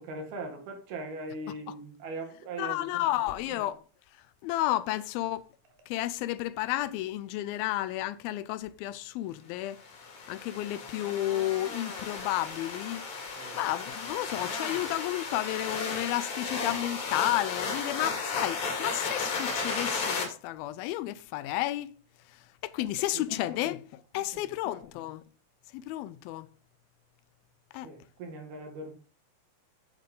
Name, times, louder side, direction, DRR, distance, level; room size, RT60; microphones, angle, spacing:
voice 1, 0.0-3.0 3.5-3.7 13.1-13.6 22.8-22.9 23.1-23.6 24.2-24.8 27.8-28.9, right 2 dB, 70° right, 4.0 m, -41 dB
voice 2, 2.6-3.8 4.4-5.5 5.9-9.8 10.3-13.1 13.5-21.9 22.3-25.2 25.7-26.5 27.7-27.9, left 15 dB, 80° left, 2.3 m, -32 dB
sound 1, 9.8-20.2, left 4 dB, 65° left, 4.1 m, -34 dB
8.7 x 7.5 x 3.8 m
omnidirectional pair, 4.6 m